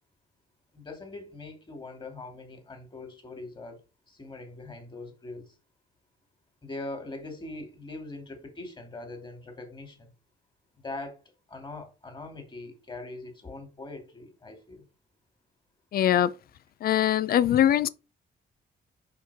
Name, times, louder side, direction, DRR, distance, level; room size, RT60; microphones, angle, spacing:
voice 1, 0.7-5.5 6.6-10.1 10.8-11.2 11.5-14.8, left 2 dB, 25° left, 2.5 m, -42 dB
voice 2, 15.9-16.3 16.8-17.9, left 11 dB, 60° left, 0.5 m, -22 dB
5.8 x 4.6 x 4.8 m
cardioid pair, 95°, 18 cm